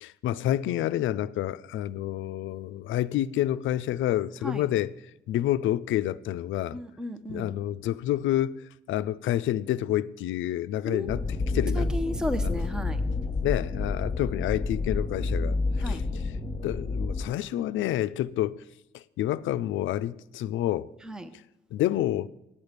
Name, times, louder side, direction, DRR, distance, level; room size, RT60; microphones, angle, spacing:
voice 1, 0.0-4.9 5.3-6.8 7.3-11.2 11.5-11.9 12.4-12.6 13.4-16.2 16.6-18.6 18.9-20.9 21.7-22.3, left 13 dB, 75° left, 0.5 m, -28 dB
voice 2, 6.7-7.5 10.8-13.0 15.8-16.0 21.0-21.3, equal, 5° right, 0.7 m, -35 dB
sound 1, 11.1-17.3, left 3 dB, 25° left, 1.2 m, -29 dB
8.9 x 8.8 x 6.6 m
cardioid pair, 90°, 20 cm